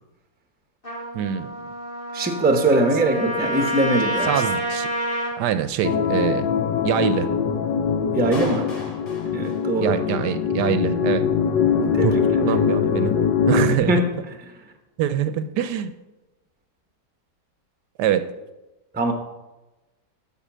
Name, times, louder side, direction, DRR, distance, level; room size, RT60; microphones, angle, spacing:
Trumpet, 0.8-5.4, right 1 dB, 30° left, 2.2 m, -28 dB
voice 1, 1.1-1.6 4.2-4.9 5.4-6.5 6.8-7.3 9.8-11.2 12.0-12.1 12.4-13.1 13.5-14.0 15.0-15.9 18.0-18.3, right 10 dB, 75° right, 11 dB, 1.1 m, -24 dB
voice 2, 2.1-4.3 8.1-8.7 9.3-10.0 11.9-12.2 13.8-14.0 18.9-19.1, right 1 dB, 10° right, 5 dB, 0.6 m, -21 dB
sound 1, 5.8-13.8, left 7 dB, 85° left, 1.4 m, -22 dB
Clapping, 8.3-10.3, left 2 dB, 55° left, 2.7 m, -38 dB
8.3 x 5.5 x 7.3 m, 1.1 s
omnidirectional pair, 1.9 m